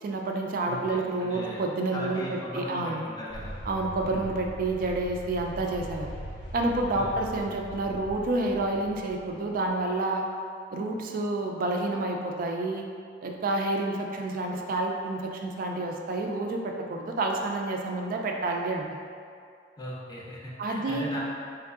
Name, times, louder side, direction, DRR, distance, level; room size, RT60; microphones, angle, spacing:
voice 1, 0.0-3.0 3.7-6.1 6.5-10.2 10.7-12.9 13.2-18.8 20.6-21.1, right 2 dB, 50° right, 2 dB, 0.3 m, -29 dB
voice 2, 0.7-1.6 1.9-3.5 4.0-4.2 6.9-7.2 19.8-21.2, equal, 25° left, -6 dB, 0.5 m, -38 dB
sound 1, 3.3-9.8, equal, 80° left, 0.7 m, -41 dB
3.5 x 3.1 x 2.4 m, 2.3 s
head